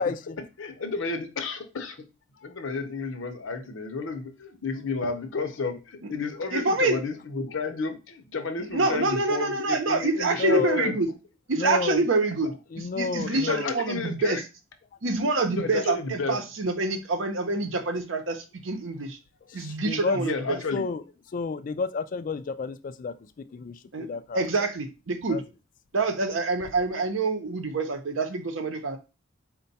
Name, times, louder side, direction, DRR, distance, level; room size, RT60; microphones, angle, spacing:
voice 1, 0.0-0.4 10.4-10.8 11.6-12.0 12.7-13.7 19.5-20.2 20.5-21.0 21.3-24.5 25.3-25.4, left 4 dB, 40° left, 0.3 m, -31 dB
voice 2, 0.6-2.1 2.4-11.0 13.2-14.4 15.5-16.4 20.1-20.9, left 4 dB, 70° left, 0.7 m, -32 dB
voice 3, 6.5-7.0 8.7-11.1 11.5-14.4 15.0-19.2 19.5-20.6 23.9-24.1 24.3-25.4 25.9-29.0, right 3 dB, 70° right, 0.7 m, -26 dB
4.4 x 2.2 x 4.0 m
head